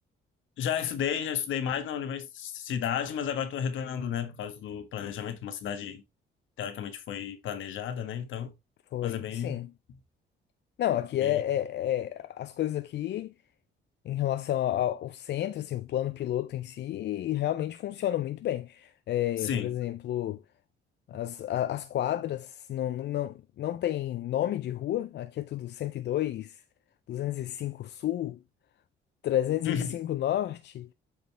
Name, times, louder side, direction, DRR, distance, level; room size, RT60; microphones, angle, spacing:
voice 1, 0.6-6.0 6.6-8.5 9.0-9.6 11.2-11.4 19.4-19.7 29.6-29.9, left 8 dB, 75° left, 1.5 m, -32 dB
voice 2, 8.9-9.7 10.8-13.3 14.1-20.4 21.1-26.6 27.1-28.4 29.2-30.9, left 12 dB, 60° left, 0.5 m, -31 dB
7.8 x 5.2 x 3.3 m
cardioid pair, 90°, 20 cm